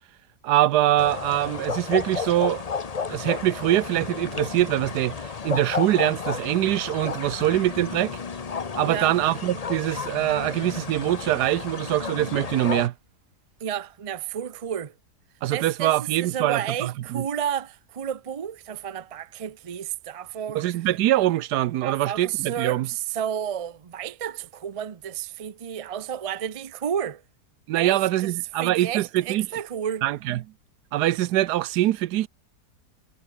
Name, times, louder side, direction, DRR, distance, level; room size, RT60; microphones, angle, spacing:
voice 1, 0.4-2.6 3.1-8.2 8.8-12.9 15.4-17.2 20.5-22.9 27.7-29.5 30.0-30.4 30.9-32.3, right 14 dB, 90° right, 1.2 m, -23 dB
sound 1, 1.0-12.9, left 5 dB, 35° left, 0.6 m, -32 dB
voice 2, 8.8-9.2 13.6-14.9 15.5-20.7 21.8-27.2 27.7-28.3 28.6-30.1, right 9 dB, 55° right, 0.4 m, -31 dB
omnidirectional pair, 1.7 m